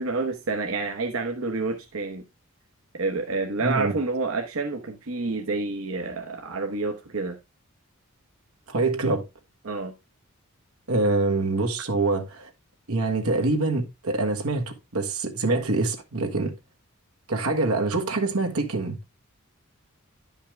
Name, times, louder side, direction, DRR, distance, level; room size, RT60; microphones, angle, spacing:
voice 1, 0.0-2.2 2.9-7.4 9.6-9.9, right 3 dB, 70° right, 1.0 m, -28 dB
voice 2, 3.6-3.9 8.7-9.2 10.9-12.5 12.9-16.5 17.3-19.0, right 3 dB, 85° right, 1.5 m, -25 dB
10.5 x 5.6 x 3.3 m
head